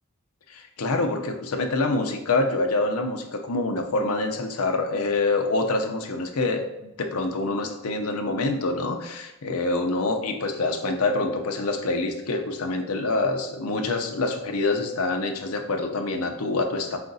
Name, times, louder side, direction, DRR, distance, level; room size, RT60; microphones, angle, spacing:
voice 1, 0.5-17.0, left 2 dB, 85° left, 5 dB, 0.6 m, -26 dB
4.9 x 2.5 x 3.9 m, 0.89 s
head